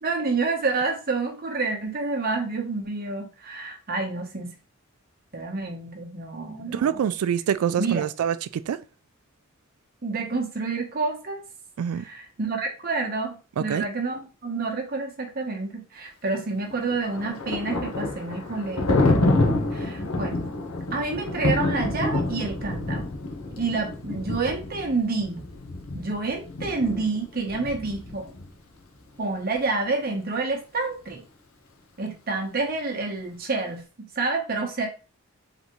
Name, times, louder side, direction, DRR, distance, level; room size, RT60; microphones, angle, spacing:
voice 1, 0.0-4.5 5.3-7.0 7.8-8.0 10.0-11.4 11.9-19.2 19.7-20.5 20.9-23.1 23.6-25.4 25.9-28.3 29.2-31.2 32.0-34.9, right 3 dB, 45° right, 1.0 m, -28 dB
voice 2, 6.7-8.8 11.8-12.0 13.6-13.8, right 8 dB, 80° right, 0.3 m, -25 dB
Thunder, 16.7-28.5, left 2 dB, 90° left, 1.0 m, -27 dB
3.9 x 3.4 x 3.0 m
head